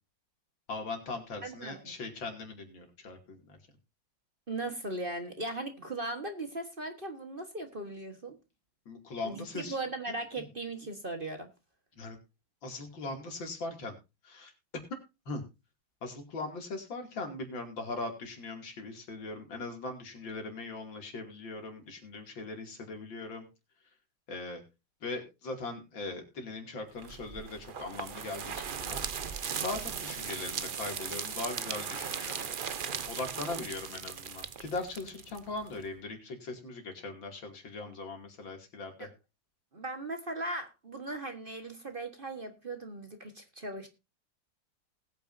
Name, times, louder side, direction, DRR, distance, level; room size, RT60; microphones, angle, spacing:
voice 1, 0.7-3.6 8.9-9.8 10.4-10.5 11.9-12.2 12.6-14.0 14.2-14.5 15.3-15.4 16.0-23.5 24.3-24.6 25.0-29.0 29.6-32.5 32.7-39.1, left 3 dB, 80° left, 3.4 m, -40 dB
voice 2, 1.4-1.9 4.5-8.4 9.2-11.5 39.0-39.1 39.7-43.9, right 2 dB, 30° right, 1.4 m, -38 dB
sound 1, 27.0-35.8, right 7 dB, 65° right, 0.5 m, -38 dB
19.5 x 9.0 x 2.7 m
omnidirectional pair, 2.1 m